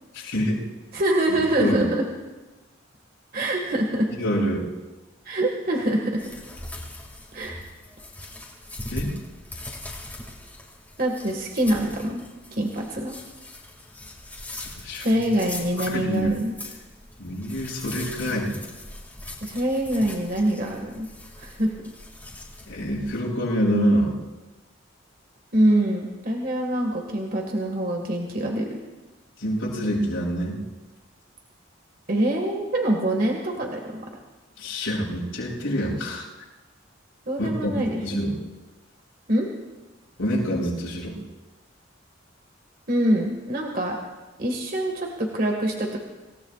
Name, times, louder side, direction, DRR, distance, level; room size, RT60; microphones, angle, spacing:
voice 1, 0.1-0.6 1.6-1.8 4.2-4.7 8.9-9.1 14.8-15.3 15.7-16.4 17.2-18.5 22.7-24.2 29.4-30.6 34.6-36.3 37.4-38.4 40.2-41.2, equal, 80° left, -6 dB, 6.8 m, -26 dB
voice 2, 0.9-2.0 3.3-4.1 5.3-6.3 7.3-7.6 11.0-12.2 12.5-13.1 15.0-16.5 19.4-21.1 21.4-21.7 25.5-28.7 32.1-34.0 37.3-38.0 39.3-39.5 42.9-44.0 44.4-46.0, right 1 dB, 45° right, 1 dB, 1.9 m, -24 dB
sound 1, 6.2-23.2, left 2 dB, 10° left, 2.2 m, -41 dB
26.5 x 17.5 x 2.5 m, 1.2 s
head